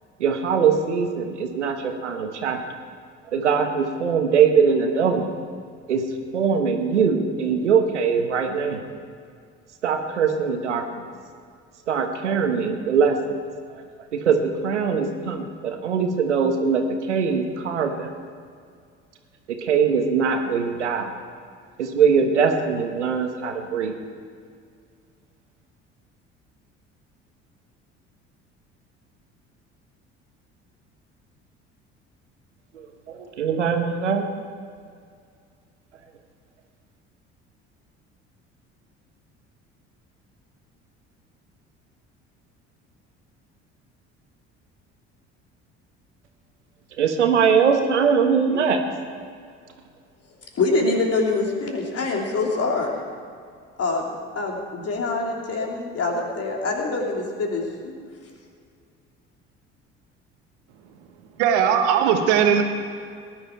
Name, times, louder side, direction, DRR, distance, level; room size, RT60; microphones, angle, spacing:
voice 1, 0.2-2.6 3.3-5.3 5.9-6.0 6.3-8.8 9.8-10.8 11.9-13.2 14.1-18.1 19.5-21.1 21.8-24.0 33.1-34.3 47.0-48.8, right 6 dB, 90° right, 5 dB, 1.2 m, -21 dB
voice 2, 50.6-52.9 53.8-57.9, left 3 dB, 45° left, 0 dB, 3.2 m, -25 dB
voice 3, 61.4-62.6, right 8 dB, 75° right, 5 dB, 1.5 m, -18 dB
18.5 x 11.0 x 4.6 m, 2.2 s
hypercardioid pair, 60°, 34 cm